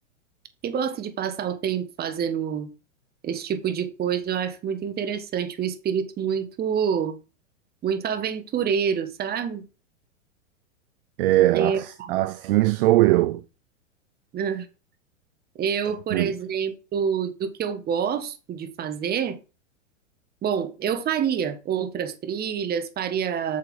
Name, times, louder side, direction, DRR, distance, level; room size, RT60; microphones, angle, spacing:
voice 1, 0.6-2.7 3.2-7.2 7.8-9.6 11.5-12.2 14.3-14.7 15.6-19.4 20.4-23.6, right 7 dB, 25° right, 1.4 m, -27 dB
voice 2, 11.2-13.4 16.1-16.3, right 17 dB, 50° right, 0.6 m, -20 dB
8.3 x 6.5 x 3.8 m
hypercardioid pair, 110°, 39 cm